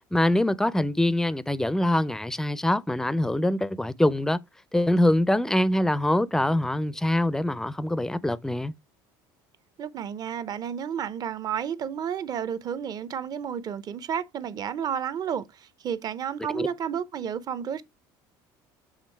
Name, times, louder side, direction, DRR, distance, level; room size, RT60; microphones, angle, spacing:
voice 1, 0.1-4.4 4.7-8.7 16.5-16.7, left 1 dB, 5° left, 0.4 m, -24 dB
voice 2, 9.8-17.8, right 8 dB, 40° right, 0.7 m, -31 dB
7.3 x 3.5 x 4.5 m
cardioid pair, 115°, 10 cm